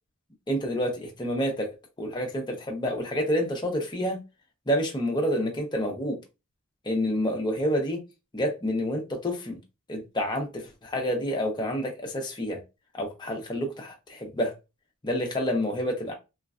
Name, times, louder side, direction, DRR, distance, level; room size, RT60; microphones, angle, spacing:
voice 1, 0.5-1.7 2.0-4.2 4.7-6.2 6.8-8.0 8.3-9.6 9.9-12.6 12.9-14.5 15.0-16.1, equal, 20° left, 0.7 m, -28 dB
3.1 x 2.3 x 2.4 m
head